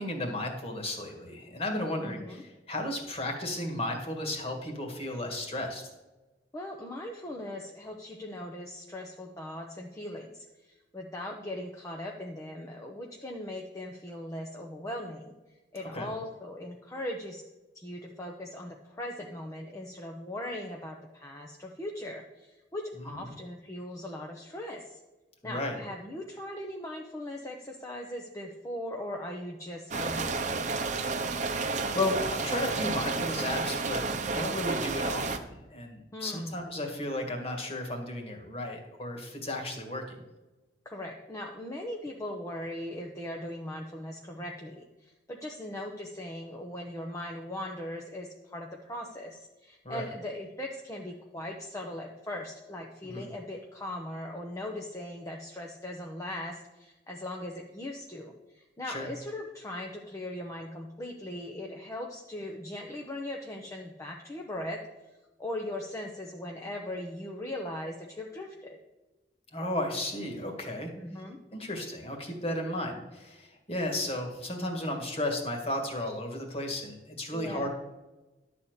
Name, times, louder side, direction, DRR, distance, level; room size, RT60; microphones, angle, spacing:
voice 1, 0.0-5.8 15.9-16.1 23.0-23.2 25.4-25.8 31.4-40.2 49.8-50.1 53.0-53.3 58.9-59.1 69.5-70.9 71.5-77.7, left 1 dB, 35° left, 2 dB, 1.9 m, -34 dB
voice 2, 2.0-2.4 6.5-10.4 10.9-15.3 15.7-17.4 17.7-25.0 25.4-31.1 36.1-36.6 40.8-64.8 65.4-68.8 71.0-71.4 77.3-77.7, left 1 dB, 20° left, 0 dB, 0.8 m, -39 dB
sound 1, 29.9-35.4, right 3 dB, 45° right, 0.7 m, -31 dB
11.5 x 4.3 x 8.1 m, 1.1 s
head